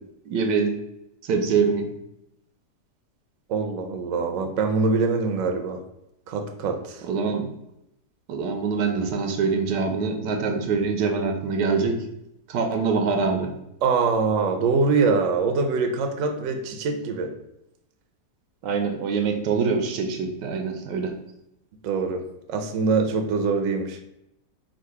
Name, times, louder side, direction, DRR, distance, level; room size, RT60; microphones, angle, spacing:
voice 1, 0.3-0.7 1.3-1.9 7.0-7.5 8.3-12.0 12.5-13.5 18.6-21.1, right 5 dB, 85° right, 5 dB, 1.3 m, -24 dB
voice 2, 3.5-5.8 6.3-7.0 13.8-17.3 21.8-22.2 22.5-24.0, right 4 dB, 65° right, 4 dB, 0.8 m, -24 dB
3.8 x 2.4 x 4.6 m, 0.84 s
omnidirectional pair, 1.8 m